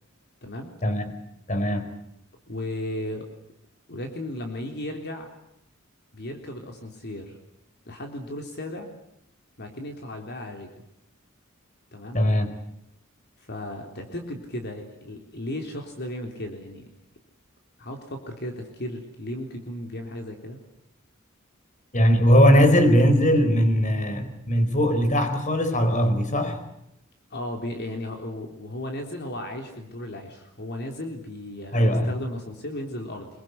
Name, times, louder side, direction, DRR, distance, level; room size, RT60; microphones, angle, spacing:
voice 1, 0.4-0.7 2.5-3.3 3.9-5.3 6.1-7.4 7.9-8.9 9.6-10.7 11.9-12.2 13.4-16.9 17.8-20.6 27.3-33.3, left 1 dB, 55° left, 4 dB, 3.8 m, -35 dB
voice 2, 1.5-1.9 12.1-12.5 21.9-26.6 31.7-32.1, equal, 40° left, 9 dB, 4.3 m, -20 dB
26.0 x 23.0 x 8.2 m, 0.80 s
head